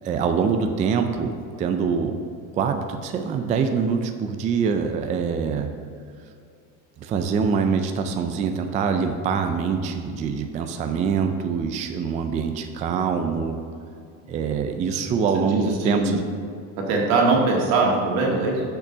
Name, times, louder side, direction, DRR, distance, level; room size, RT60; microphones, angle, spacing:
voice 1, 0.0-2.2 2.5-5.7 7.0-13.6 14.3-16.2, right 6 dB, 20° right, 5 dB, 0.3 m, -24 dB
voice 2, 15.3-16.2 16.8-18.6, right 3 dB, 80° right, -1 dB, 1.9 m, -21 dB
6.6 x 6.1 x 5.5 m, 2.3 s
cardioid pair, 145°, 39 cm